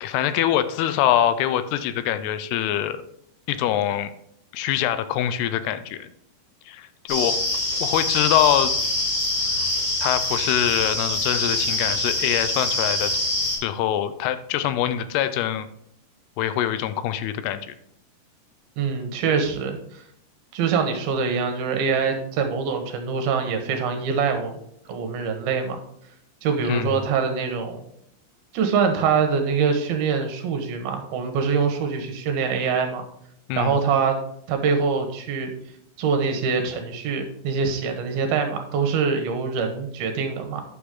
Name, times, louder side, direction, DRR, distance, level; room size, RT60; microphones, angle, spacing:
voice 1, 0.0-3.0 3.5-4.1 4.5-6.1 6.7-7.4 7.8-8.7 10.0-13.2 13.6-15.7 16.4-17.7 26.7-27.0 33.5-33.8, left 11 dB, 90° left, 12 dB, 2.7 m, -24 dB
sound 1, 7.1-13.6, left 2 dB, 70° left, 5.5 m, -25 dB
voice 2, 18.8-20.0 20.5-24.6 24.9-25.8 26.4-27.8 28.5-33.0 33.6-34.2 34.5-35.5 36.0-40.6, right 5 dB, 75° right, 5 dB, 2.8 m, -24 dB
9.7 x 6.9 x 3.7 m, 0.71 s
omnidirectional pair, 4.5 m